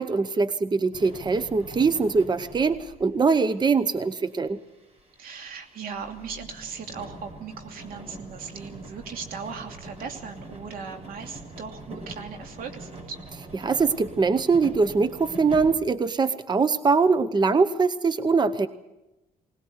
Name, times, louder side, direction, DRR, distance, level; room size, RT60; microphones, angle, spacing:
voice 1, 0.0-4.6 13.6-18.7, right 4 dB, 30° right, 13 dB, 0.9 m, -22 dB
sound 1, 0.9-15.7, right 1 dB, 45° right, 7.6 m, -44 dB
voice 2, 5.2-13.2, right 5 dB, 85° right, 5 dB, 2.7 m, -38 dB
21.0 x 19.0 x 8.1 m, 0.99 s
cardioid pair, 85°, 15 cm